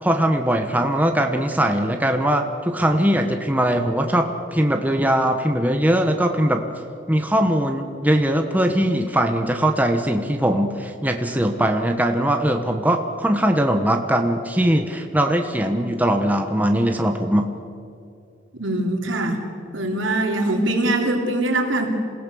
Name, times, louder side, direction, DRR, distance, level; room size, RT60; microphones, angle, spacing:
voice 1, 0.0-6.6 7.1-17.5, right 1 dB, 10° right, 4 dB, 1.1 m, -20 dB
voice 2, 18.5-19.4 19.7-21.9, right 1 dB, 80° right, 1 dB, 3.5 m, -22 dB
27.5 x 17.0 x 7.0 m, 2.5 s
head